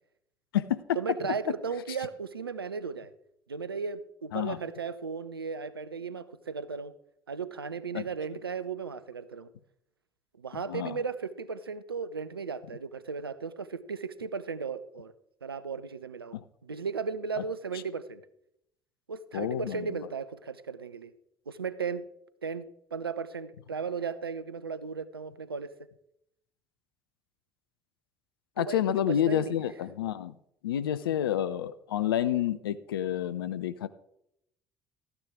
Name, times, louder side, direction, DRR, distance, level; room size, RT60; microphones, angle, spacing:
voice 1, 1.0-3.1 3.5-6.9 7.3-9.5 10.4-15.1 15.4-16.4 16.6-18.2 19.1-21.1 21.5-22.0 22.4-25.7 28.6-29.6, right 5 dB, 90° right, 15 dB, 0.4 m, -36 dB
voice 2, 10.5-11.0 16.3-16.4 19.3-19.9 28.6-30.3 30.6-33.9, left 11 dB, 80° left, 15 dB, 0.5 m, -29 dB
13.5 x 9.7 x 3.5 m, 0.76 s
figure-of-eight pair, 50°, 12 cm